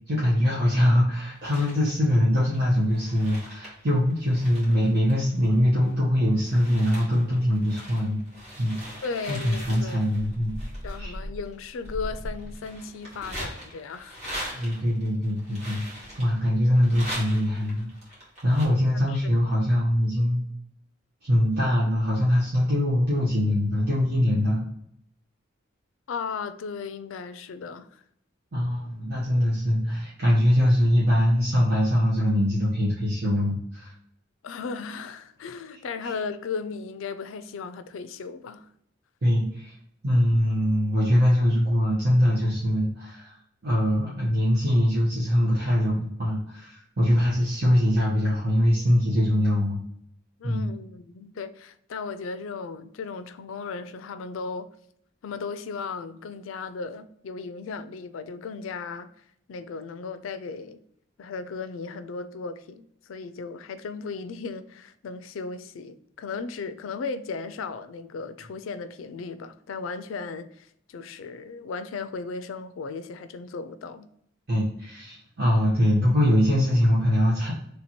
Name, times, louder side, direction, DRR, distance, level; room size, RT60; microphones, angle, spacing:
voice 1, 0.1-8.2 8.6-8.8 9.3-10.5 11.0-11.1 14.5-15.9 16.2-17.9 18.4-20.4 21.2-24.6 28.5-33.9 36.0-36.1 39.2-39.7 40.0-43.4 43.6-49.8 50.4-50.7 74.5-77.5, equal, 55° right, 1.0 m, -23 dB
sound 1, 1.2-1.9 2.5-5.9 6.3-18.6, equal, 35° right, 1.7 m, -40 dB
voice 2, 9.0-10.0 10.8-14.2 14.4-14.8 18.9-19.2 26.1-28.0 34.4-38.7 50.4-54.7 55.2-59.1 59.5-60.8 61.2-74.1, left 4 dB, 85° left, 0.4 m, -36 dB
3.3 x 2.9 x 4.2 m
head